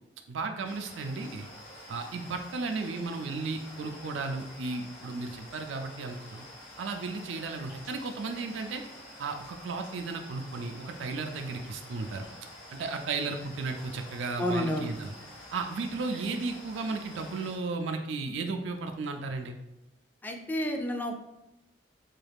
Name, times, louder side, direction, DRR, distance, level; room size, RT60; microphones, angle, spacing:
voice 1, 0.3-1.5 1.9-6.4 6.8-8.8 9.2-12.3 12.7-15.1 15.5-19.6, right 3 dB, 85° right, 5 dB, 0.4 m, -34 dB
sound 1, 0.6-17.6, left 1 dB, 70° left, 1.5 m, -48 dB
voice 2, 14.4-14.9 20.2-21.2, equal, 10° left, 3 dB, 0.3 m, -30 dB
4.0 x 2.3 x 3.3 m, 0.93 s
head